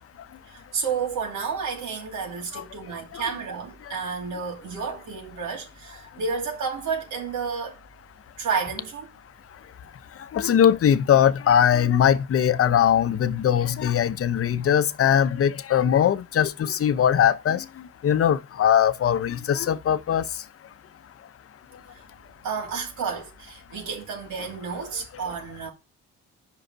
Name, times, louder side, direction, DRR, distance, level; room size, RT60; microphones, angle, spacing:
voice 1, 0.5-7.8 8.4-9.1 21.9-22.0 22.4-25.7, right 5 dB, 80° right, 2.6 m, -31 dB
voice 2, 10.3-17.6 18.0-20.2, left 9 dB, 50° left, 0.8 m, -20 dB
5.7 x 5.3 x 6.1 m
cardioid pair, 90°, 30 cm